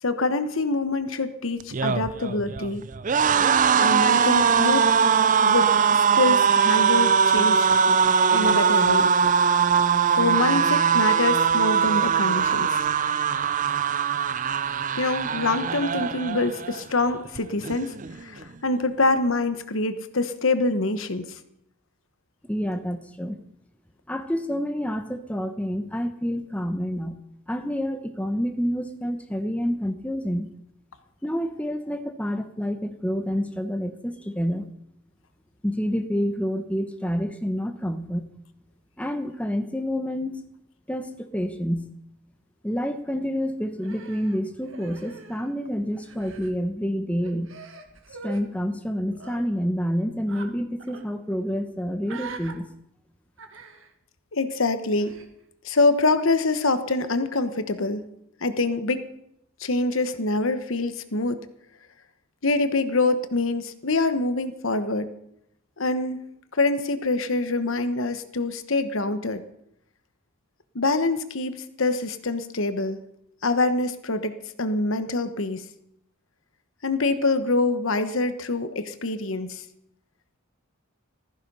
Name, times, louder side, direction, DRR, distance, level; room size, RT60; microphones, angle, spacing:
voice 1, 0.0-2.8 3.8-5.0 5.5-8.0 8.3-9.1 10.2-12.8 15.0-21.4 54.3-55.1 55.6-58.0 58.4-59.1 59.6-61.5 62.4-65.1 65.8-66.2 66.5-69.4 70.7-73.0 73.4-75.6 76.8-79.6, left 3 dB, 65° left, 11 dB, 1.2 m, -25 dB
sound 1, 1.6-16.8 17.1-17.4 17.6-18.4, right 7 dB, 35° right, 0.5 m, -21 dB
voice 2, 22.5-23.4 24.1-27.2 27.5-30.5 31.2-34.7 35.6-38.3 39.0-40.5 40.9-41.9 42.6-47.5 48.2-52.7, equal, 5° left, 7 dB, 1.0 m, -28 dB
Human voice, 43.8-45.7 45.9-46.5 47.2-48.4 49.1-49.4 50.3-50.5 50.8-51.0 52.0-52.5 53.4-53.9 55.0-55.3, right 4 dB, 60° right, 1.8 m, -43 dB
15.5 x 14.5 x 5.5 m, 0.76 s
head